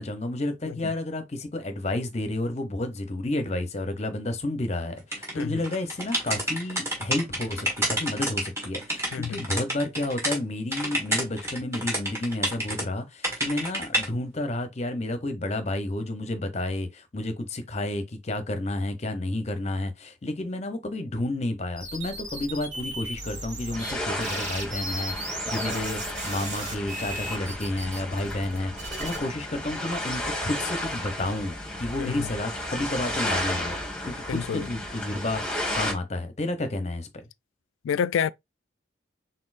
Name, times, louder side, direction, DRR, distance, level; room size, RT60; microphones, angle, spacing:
voice 1, 0.0-33.7 34.0-35.4 35.7-37.1, left 1 dB, 35° left, 0.8 m, -31 dB
sound 1, 5.1-10.4 10.7-12.8 13.2-14.1, right 1 dB, 15° right, 1.5 m, -29 dB
voice 2, 9.1-9.4 32.0-32.3 34.3-34.7 37.8-38.3, left 7 dB, 80° left, 0.3 m, -28 dB
sound 2, 21.8-23.9 24.2-29.2, right 1 dB, 75° right, 2.4 m, -36 dB
sound 3, 23.7-35.9, left 1 dB, 5° left, 1.5 m, -33 dB
4.2 x 3.9 x 2.5 m
head